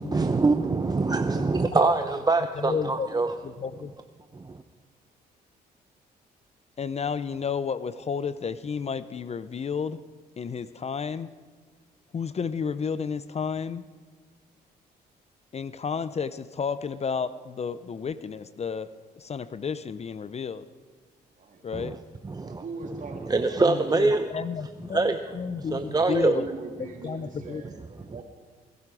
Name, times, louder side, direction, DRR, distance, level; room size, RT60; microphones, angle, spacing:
voice 1, 0.0-3.3 4.3-4.6 21.7-22.0 22.2-22.6 23.3-24.3 24.9-25.2 25.6-26.4, right 3 dB, 20° right, 8 dB, 0.7 m, -24 dB
voice 2, 2.6-3.1 3.4-3.9 6.8-10.0 10.4-11.3 12.1-13.8 15.5-18.9 19.2-20.6 21.6-22.0 23.7-26.5 27.0-27.6, left 6 dB, 40° left, 15 dB, 0.6 m, -31 dB
voice 3, 22.4-24.2 24.9-25.4 25.8-28.2, right 3 dB, 50° right, 2 dB, 2.8 m, -42 dB
21.0 x 10.5 x 4.9 m, 1.4 s
supercardioid pair, 70°, 17 cm